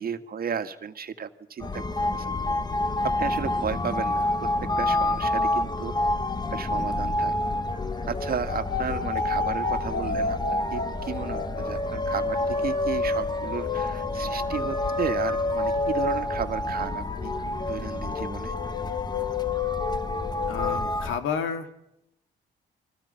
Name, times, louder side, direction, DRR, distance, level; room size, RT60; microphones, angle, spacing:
voice 1, 0.0-1.8 2.1-2.4 3.2-4.5 4.8-6.0 6.5-7.3 8.1-10.4 10.7-17.3 17.6-18.5, right 7 dB, 50° right, 9 dB, 1.9 m, -33 dB
sound 1, 1.6-21.2, left 1 dB, 20° left, 1.6 m, -29 dB
sound 2, 7.7-16.8 17.1-20.8, left 4 dB, 50° left, 3.1 m, -31 dB
voice 2, 20.5-21.8, left 7 dB, 80° left, 7 dB, 2.7 m, -31 dB
29.0 x 24.5 x 5.8 m, 0.86 s
cardioid pair, 90°, 20 cm